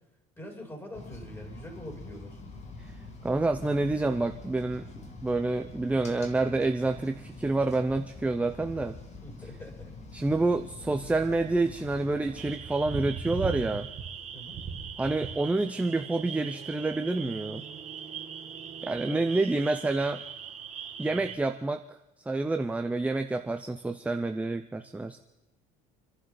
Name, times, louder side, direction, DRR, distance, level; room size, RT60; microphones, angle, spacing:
voice 1, 0.4-2.4 9.2-10.1 10.3-10.5 11.0-11.3 14.3-14.6 19.0-19.7, equal, 15° left, 1 dB, 6.9 m, -45 dB
sound 1, 0.9-12.6, left 3 dB, 40° left, 2.4 m, -45 dB
voice 2, 3.2-8.9 10.1-13.9 15.0-17.6 18.8-20.2 21.0-21.8 22.3-25.2, right 2 dB, 10° right, 7 dB, 0.7 m, -28 dB
sound 2, 12.4-21.4, right 7 dB, 40° right, 1.9 m, -39 dB
28.0 x 11.5 x 4.0 m, 0.95 s
cardioid pair, 110°, 17 cm